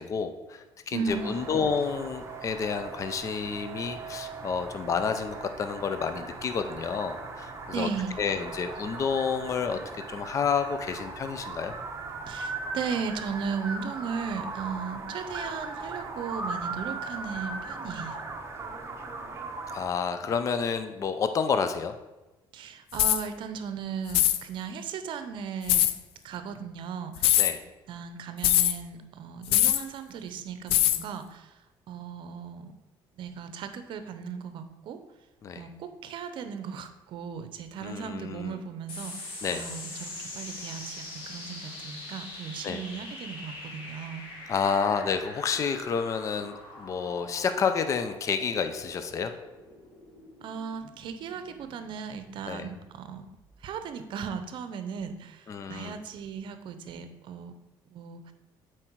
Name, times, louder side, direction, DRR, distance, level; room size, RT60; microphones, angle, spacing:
voice 1, 0.0-7.9 8.2-11.7 19.7-22.0 27.4-27.6 35.4-35.7 37.8-38.6 39.4-39.6 42.6-42.8 44.5-49.3 52.5-52.7 55.5-56.0, left 6 dB, 35° left, 9 dB, 0.5 m, -30 dB
voice 2, 0.9-1.4 7.7-8.2 12.3-18.2 22.5-25.9 26.2-27.4 27.9-31.5 31.9-32.7 33.2-35.0 35.6-44.2 50.4-53.3 53.6-57.5 57.9-58.3, right 6 dB, 60° right, 9 dB, 0.7 m, -36 dB
sound 1, 1.1-19.9, right 3 dB, 30° right, 0.9 m, -38 dB
sound 2, 22.9-23.2 24.1-24.4 25.7-25.9 27.2-27.5 28.4-28.7 29.5-29.8 30.7-31.0, left 12 dB, 90° left, 0.4 m, -22 dB
sound 3, 38.9-53.7, left 2 dB, 70° left, 2.1 m, -44 dB
7.6 x 4.6 x 4.6 m, 1.1 s
cardioid pair, 135°, 9 cm